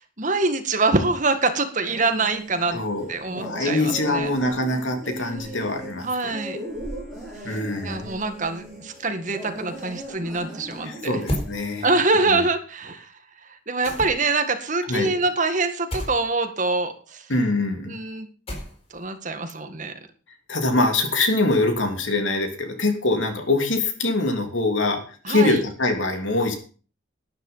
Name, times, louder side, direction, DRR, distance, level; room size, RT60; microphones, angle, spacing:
voice 1, 0.2-2.8 3.1-4.3 6.0-6.6 7.4-7.6 7.8-11.2 11.8-13.1 13.7-17.3 17.9-18.3 18.9-19.9 25.2-25.6, right 3 dB, 40° right, 7 dB, 1.8 m, -24 dB
sound 1, 1.8-12.1, right 1 dB, 5° left, 8.0 m, -38 dB
voice 2, 2.7-6.3 7.4-8.1 10.8-11.9 12.3-12.4 14.9-15.1 17.3-18.0 20.5-25.0 25.3-26.5, left 2 dB, 80° left, 5 dB, 3.0 m, -24 dB
sound 2, 11.3-11.5 13.8-14.4 15.9-16.2 18.5-19.0, equal, 30° left, 4.4 m, -30 dB
12.0 x 11.0 x 5.6 m, 0.40 s
head